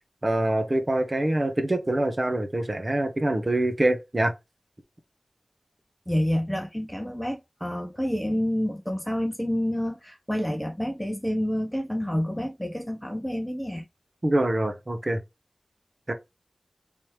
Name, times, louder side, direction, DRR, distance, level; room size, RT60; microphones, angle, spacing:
voice 1, 0.2-4.3 14.2-15.2 16.1-16.2, right 1 dB, 40° right, 0.8 m, -25 dB
voice 2, 6.1-13.8, equal, 5° left, 0.6 m, -28 dB
3.4 x 2.9 x 3.1 m
wide cardioid pair, 55°, 0 cm